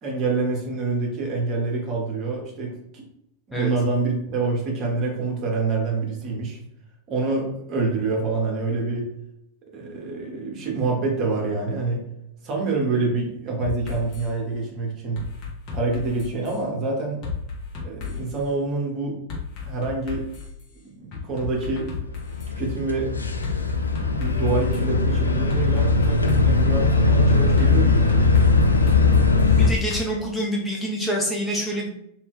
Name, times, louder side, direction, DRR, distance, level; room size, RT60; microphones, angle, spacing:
voice 1, 0.0-3.0 3.5-6.6 7.1-9.1 9.7-12.1 12.4-15.3 15.7-17.2 17.8-19.2 19.6-20.3 20.8-21.9 22.6-23.1 23.9-28.3, right 3 dB, 35° right, -1 dB, 1.0 m, -26 dB
sound 1, 13.6-14.3 15.1-16.6 17.2-18.4 19.3-20.6 21.1-22.5 23.4-24.8 25.5-26.7 27.6-30.0, left 5 dB, 40° left, 1.1 m, -34 dB
sound 2, 22.2-29.7, left 3 dB, 80° left, 0.3 m, -19 dB
voice 2, 29.6-31.9, equal, 5° left, -2 dB, 0.5 m, -26 dB
2.8 x 2.6 x 3.5 m, 0.78 s
figure-of-eight pair, 90°, 0 cm